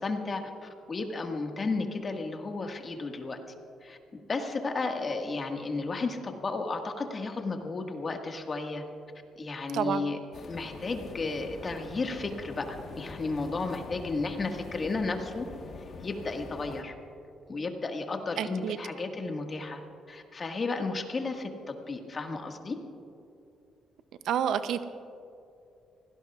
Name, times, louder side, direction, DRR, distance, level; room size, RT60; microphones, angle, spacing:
voice 1, 0.0-3.4 3.8-4.0 4.3-8.8 9.4-10.2 10.5-15.5 15.8-16.9 17.5-19.8 20.1-22.8, left 3 dB, 35° left, 3 dB, 1.7 m, -33 dB
sound 1, 10.3-16.8, left 4 dB, 55° left, 1.3 m, -44 dB
voice 2, 18.4-18.8 24.3-24.8, right 9 dB, 80° right, 11 dB, 0.6 m, -29 dB
24.0 x 17.0 x 2.4 m, 2.6 s
cardioid pair, 90°, 0 cm